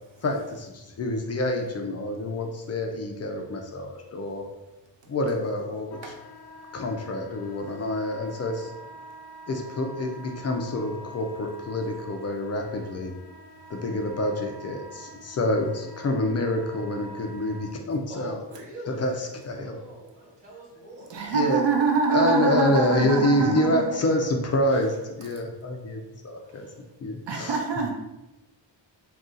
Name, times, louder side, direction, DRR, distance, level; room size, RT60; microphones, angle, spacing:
voice 1, 0.2-4.5 5.1-6.1 6.7-8.7 9.5-13.1 13.7-18.4 18.9-19.8 21.3-21.6 22.1-26.7 27.0-27.6, left 1 dB, 35° left, 3 dB, 0.4 m, -27 dB
Wind instrument woodwind instrument, 5.9-17.7, right 1 dB, 80° left, 0.7 m, -46 dB
voice 2, 18.1-19.1 19.5-21.2, right 2 dB, 15° right, -5 dB, 1.1 m, -42 dB
voice 3, 21.1-23.8 27.3-27.9, right 4 dB, 65° right, 1 dB, 0.7 m, -24 dB
2.6 x 2.3 x 3.7 m, 1.0 s
cardioid pair, 110°, 46 cm